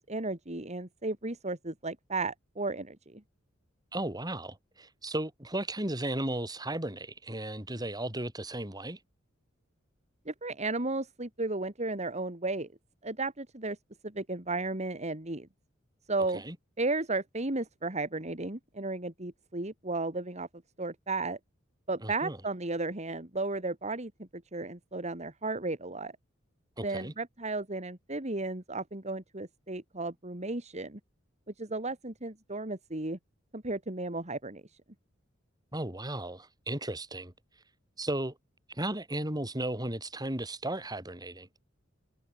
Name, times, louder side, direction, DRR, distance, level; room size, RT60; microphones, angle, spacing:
voice 1, 0.0-3.2 10.3-12.7 13.0-13.8 14.0-15.5 16.1-16.4 16.8-20.5 20.8-21.4 21.9-26.1 26.8-31.0 31.6-33.2 33.5-34.6, right 2 dB, 35° right, 2.8 m, -34 dB
voice 2, 3.9-9.0 16.3-16.6 22.0-22.4 26.8-27.1 35.7-37.3 38.0-38.4 38.7-41.5, right 1 dB, 20° right, 6.8 m, -35 dB
head